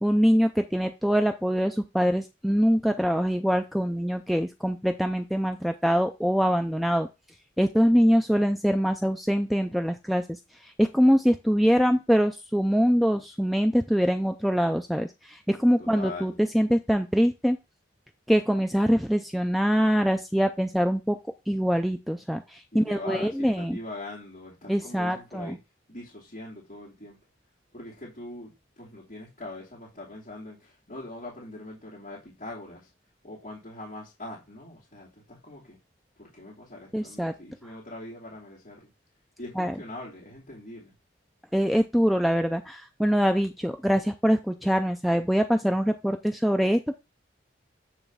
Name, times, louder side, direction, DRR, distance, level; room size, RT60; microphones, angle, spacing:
voice 1, 0.0-7.1 7.6-17.6 18.3-21.2 21.5-23.8 24.7-25.6 36.9-37.3 39.6-39.7 41.5-47.0, equal, ahead, 0.3 m, -24 dB
voice 2, 15.8-16.4 22.7-25.6 25.9-27.2 27.7-32.9 33.2-35.8 36.2-38.9 39.4-40.9, left 2 dB, 40° left, 2.7 m, -42 dB
9.1 x 3.3 x 5.4 m
head